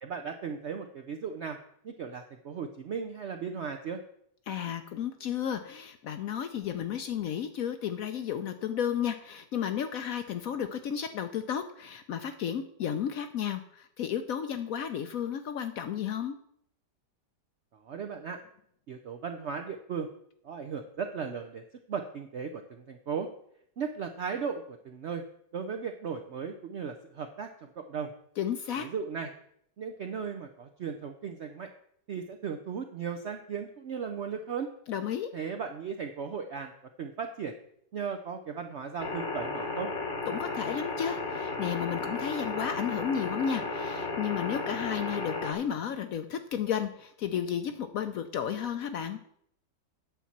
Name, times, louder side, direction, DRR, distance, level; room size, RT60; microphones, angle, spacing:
voice 1, 0.0-1.6 1.8-4.0 17.9-18.4 18.9-20.1 20.4-21.6 21.9-23.3 23.8-25.2 25.5-28.1 28.8-29.3 29.8-31.7 32.1-34.7 35.3-36.7 37.0-37.5 37.9-39.9, right 6 dB, 70° right, 5 dB, 0.6 m, -36 dB
voice 2, 4.5-16.3 28.4-28.9 34.9-35.3 40.3-49.2, left 8 dB, 65° left, 8 dB, 0.9 m, -33 dB
sound 1, 39.0-45.5, left 3 dB, 40° left, 1.2 m, -34 dB
9.2 x 4.2 x 7.3 m, 0.70 s
omnidirectional pair, 1.9 m